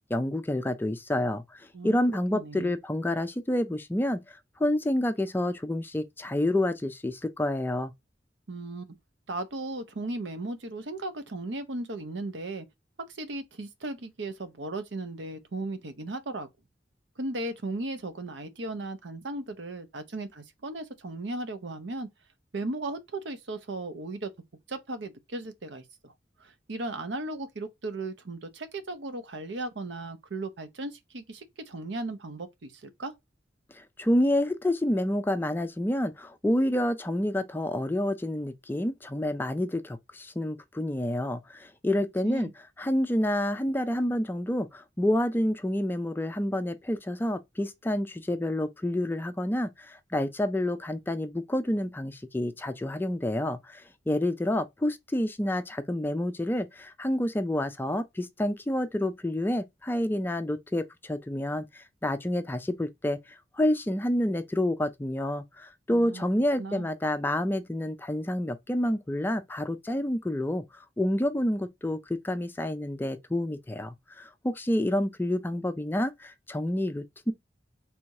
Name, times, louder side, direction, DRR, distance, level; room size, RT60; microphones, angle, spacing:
voice 1, 0.1-7.9 33.7-42.5 42.8-77.3, left 1 dB, 10° left, 0.4 m, -28 dB
voice 2, 2.3-2.8 8.5-8.9 9.3-12.7 13.1-16.5 17.2-22.1 22.5-24.3 24.7-26.1 26.4-33.1 42.2-42.5 65.9-66.2 66.6-66.9, right 2 dB, 80° right, 0.8 m, -36 dB
3.4 x 2.7 x 4.6 m
head